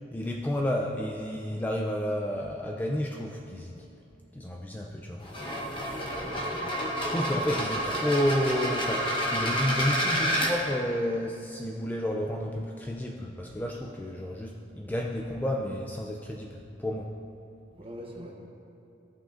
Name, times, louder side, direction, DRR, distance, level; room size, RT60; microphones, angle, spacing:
voice 1, 0.1-3.8 4.3-5.2 7.0-17.1, left 1 dB, 10° left, 0 dB, 0.3 m, -31 dB
sound 1, 5.2-10.5, equal, 25° left, 0.9 m, -29 dB
voice 2, 6.2-6.7 7.1-7.6 17.7-18.3, equal, 30° right, 0 dB, 0.9 m, -43 dB
14.0 x 5.5 x 2.5 m, 2.8 s
head